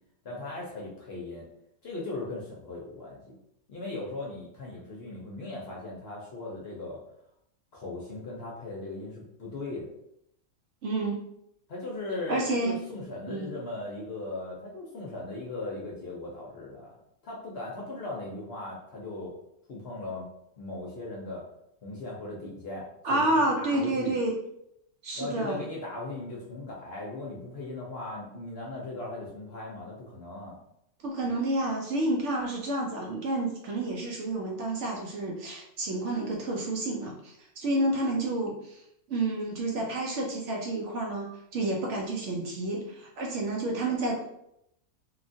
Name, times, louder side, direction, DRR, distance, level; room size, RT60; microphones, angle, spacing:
voice 1, 0.2-1.5 1.8-3.3 3.7-7.0 7.7-9.9 11.7-16.9 17.2-19.4 19.7-20.3 20.6-21.4 21.8-24.2 25.1-30.6, left 2 dB, 60° left, -3 dB, 0.7 m, -38 dB
voice 2, 10.8-11.2 12.3-12.8 13.3-13.5 23.0-24.3 25.0-25.6 31.0-38.8 39.1-44.3, right 2 dB, 65° right, -1 dB, 0.8 m, -29 dB
3.0 x 2.3 x 2.6 m, 0.78 s
omnidirectional pair, 1.5 m